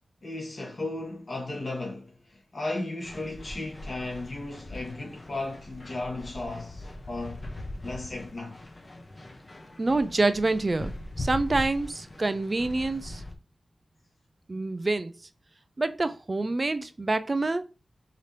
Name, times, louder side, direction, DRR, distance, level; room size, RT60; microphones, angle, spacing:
voice 1, 0.2-7.4 7.8-8.6, left 2 dB, 55° left, 1.8 m, -35 dB
sound 1, 3.0-13.3, left 1 dB, 35° left, 0.9 m, -41 dB
voice 2, 9.8-13.2 14.5-15.1 15.8-17.6, right 2 dB, 35° right, 0.4 m, -27 dB
5.0 x 2.8 x 3.3 m
wide cardioid pair, 80°, 0 cm